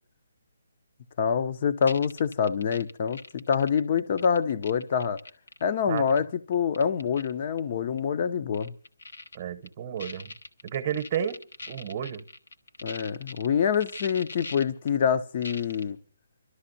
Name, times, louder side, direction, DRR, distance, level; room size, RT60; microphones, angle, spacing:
voice 1, 1.2-5.2 5.6-8.7 12.8-16.0, left 7 dB, 40° left, 0.7 m, -26 dB
sound 1, 1.8-5.6 6.0-6.2 6.5-7.3 7.6-7.7 8.0-8.1 8.5-9.4 9.7-9.8 10.0-13.5 13.7-14.9 15.4-15.8, left 3 dB, 80° left, 1.2 m, -41 dB
voice 2, 9.3-10.3 10.6-12.2, right 9 dB, 30° right, 0.9 m, -32 dB
30.0 x 12.5 x 2.7 m
hypercardioid pair, 160°, 0 cm